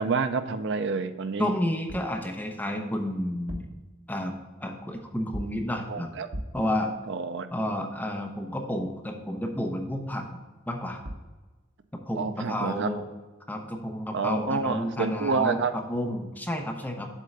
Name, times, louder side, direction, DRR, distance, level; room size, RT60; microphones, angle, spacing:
voice 1, 0.0-1.5 5.9-6.3 7.1-7.5 12.2-12.9 14.1-15.7, right 4 dB, 55° right, 10 dB, 0.5 m, -28 dB
voice 2, 1.4-3.7 4.1-4.3 4.6-6.1 6.5-6.9 7.5-10.4 10.7-11.0 11.9-13.0 13.5-17.1, left 1 dB, 10° left, 2 dB, 0.8 m, -31 dB
sound 1, 1.9-2.2 3.3-3.9 5.3-5.7 6.3-6.7 10.7-10.8 11.0-11.4, equal, 85° right, 0.9 m, -38 dB
7.3 x 3.8 x 6.6 m, 1.2 s
head